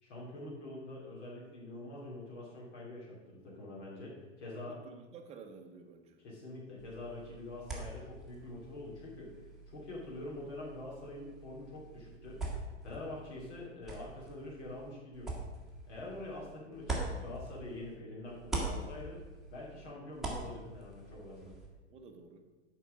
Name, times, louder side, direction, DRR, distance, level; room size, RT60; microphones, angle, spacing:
voice 1, 0.0-4.8 6.2-9.3 9.7-15.4 15.9-19.2 19.5-21.5, left 2 dB, 65° left, -5 dB, 2.6 m, -45 dB
voice 2, 4.7-6.2 21.9-22.4, right 5 dB, 20° right, 4 dB, 0.7 m, -52 dB
sound 1, 6.8-18.0 18.3-21.7, right 2 dB, ahead, 1.5 m, -43 dB
7.5 x 4.7 x 6.3 m, 1.2 s
hypercardioid pair, 135°, 36 cm